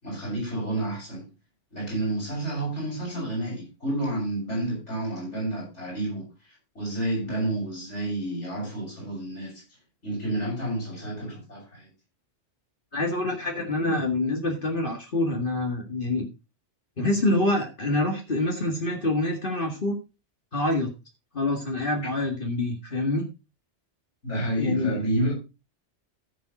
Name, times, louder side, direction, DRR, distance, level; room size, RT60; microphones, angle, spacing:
voice 1, 0.0-1.3 1.7-9.6 10.0-11.9 24.2-25.3, right 1 dB, 80° left, 7.7 m, -30 dB
voice 2, 12.9-16.3 17.0-20.0 20.5-20.9 21.3-23.3 24.6-25.0, left 2 dB, 50° left, 2.1 m, -26 dB
14.0 x 7.7 x 4.2 m
omnidirectional pair, 1.2 m